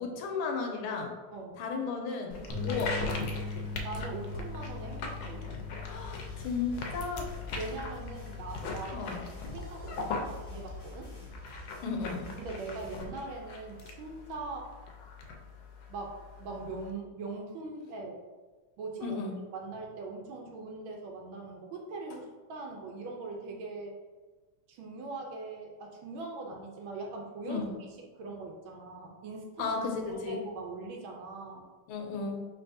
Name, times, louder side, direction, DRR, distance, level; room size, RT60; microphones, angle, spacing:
voice 1, 0.0-1.1 1.6-3.0 5.8-7.3 8.9-9.2 11.8-12.3 19.0-19.3 27.5-27.7 29.6-30.4 31.9-32.4, left 4 dB, 90° left, 2 dB, 1.6 m, -34 dB
voice 2, 1.3-1.6 2.7-2.8 3.8-5.5 7.5-9.1 9.5-11.1 12.4-14.7 15.9-18.2 18.8-19.2 19.5-24.0 24.7-27.6 28.1-29.7 30.1-31.7, right 3 dB, 75° right, 1 dB, 1.4 m, -41 dB
sound 1, 2.3-16.9, left 3 dB, 75° left, 1.2 m, -40 dB
sound 2, 2.5-8.8, left 4 dB, 50° right, 0.8 m, -41 dB
sound 3, 5.9-13.0, right 1 dB, 25° left, 0.4 m, -49 dB
4.6 x 3.4 x 2.6 m, 1.3 s
omnidirectional pair, 2.3 m